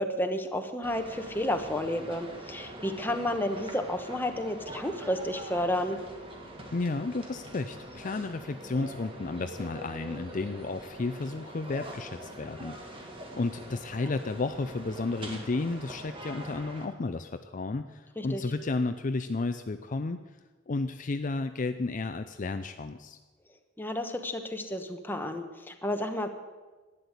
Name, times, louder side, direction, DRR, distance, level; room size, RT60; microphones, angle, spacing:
voice 1, 0.0-6.0 18.2-18.4 23.8-26.3, left 1 dB, 10° left, 5 dB, 1.1 m, -31 dB
sound 1, 0.8-16.8, right 1 dB, 30° right, 1.9 m, -44 dB
voice 2, 6.7-20.2 20.7-23.2, left 3 dB, 45° left, 8 dB, 0.5 m, -32 dB
12.0 x 10.0 x 8.1 m, 1.3 s
head